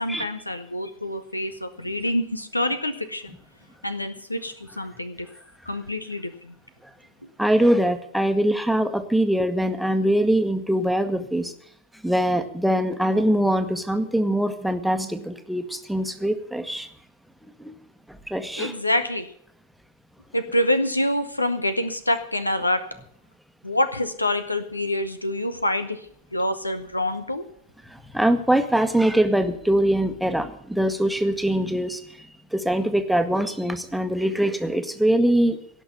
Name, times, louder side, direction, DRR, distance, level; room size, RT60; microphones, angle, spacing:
voice 1, 0.0-3.3 3.8-5.3 5.7-6.3 18.6-19.3 20.3-22.8 23.6-26.0 26.3-27.4, left 1 dB, 85° left, 12 dB, 0.8 m, -26 dB
voice 2, 7.4-11.5 12.0-16.9 17.6-17.7 18.1-18.8 27.8-35.6, right 1 dB, ahead, 8 dB, 1.3 m, -23 dB
17.0 x 6.2 x 9.8 m, 0.66 s
figure-of-eight pair, 90°, 0 cm